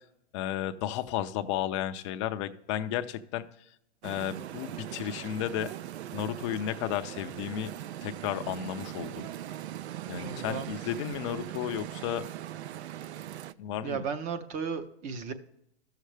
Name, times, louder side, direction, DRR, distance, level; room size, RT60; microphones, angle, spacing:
voice 1, 0.3-3.5 4.0-5.7 6.1-7.7 8.0-9.3 10.1-12.2 13.6-14.0, left 11 dB, 30° left, 0.4 m, -33 dB
sound 1, 4.0-13.5, right 12 dB, 75° right, 0.5 m, -40 dB
voice 2, 10.2-10.7 13.8-15.3, right 6 dB, 20° right, 0.6 m, -34 dB
13.5 x 6.6 x 3.2 m
hypercardioid pair, 140°, 34 cm